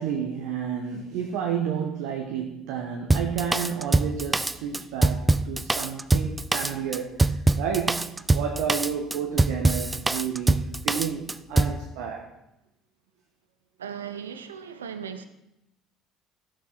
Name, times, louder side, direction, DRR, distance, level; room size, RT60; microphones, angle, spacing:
voice 1, 0.0-12.3, right 7 dB, 70° right, 1.3 m, -31 dB
Drum kit, 3.1-11.8, right 2 dB, 20° right, 0.6 m, -23 dB
voice 2, 13.8-15.2, right 7 dB, 90° right, 0.8 m, -37 dB
14.0 x 6.6 x 6.1 m
hypercardioid pair, 60°, 0 cm